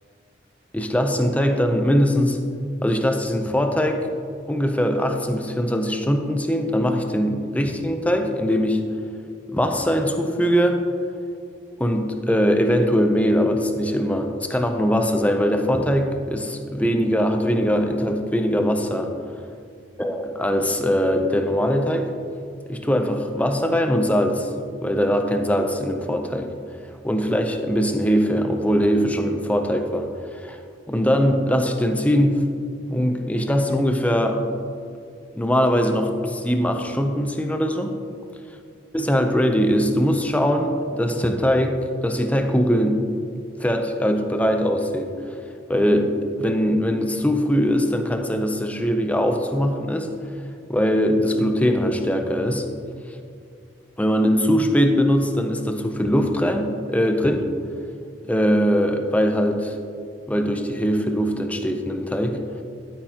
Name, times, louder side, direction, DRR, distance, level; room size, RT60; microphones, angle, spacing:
voice 1, 0.7-2.4 2.8-4.1 4.5-8.8 9.5-10.8 11.8-19.1 20.0-22.1 22.7-24.5 24.8-26.5 27.0-30.6 30.9-32.4 32.9-34.4 35.3-38.0 38.9-43.0 43.6-45.1 45.7-46.1 46.4-50.1 50.7-52.6 54.0-57.5 58.2-59.8 60.3-62.4, equal, 10° left, 5 dB, 0.5 m, -21 dB
11.0 x 8.7 x 2.9 m, 2.4 s
head